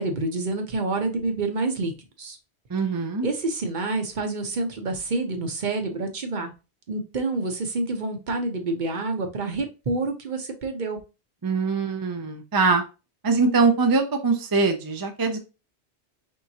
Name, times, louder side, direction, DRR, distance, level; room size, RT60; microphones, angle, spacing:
voice 1, 0.0-1.9 2.2-2.4 3.2-6.5 6.9-11.0, right 3 dB, 50° right, 5 dB, 0.9 m, -28 dB
voice 2, 2.7-3.3 11.4-12.8 13.2-15.4, right 4 dB, 30° right, 6 dB, 0.4 m, -22 dB
4.6 x 3.6 x 2.7 m, 0.30 s
omnidirectional pair, 1.1 m